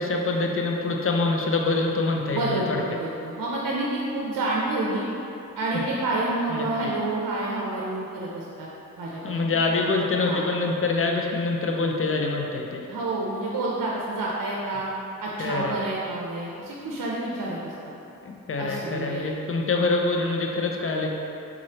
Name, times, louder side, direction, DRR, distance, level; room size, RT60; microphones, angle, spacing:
voice 1, 0.0-2.8 5.7-5.8 6.5-6.7 9.2-12.9 15.4-15.8 18.2-21.1, left 3 dB, 40° left, 1 dB, 0.5 m, -25 dB
voice 2, 2.3-5.0 5.6-8.7 9.0-9.3 9.7-9.9 10.3-10.4 12.9-14.9 15.2-17.7 18.6-19.3, right 2 dB, 75° right, -4 dB, 0.5 m, -29 dB
3.7 x 3.1 x 2.8 m, 2.7 s
cardioid pair, 45°, 33 cm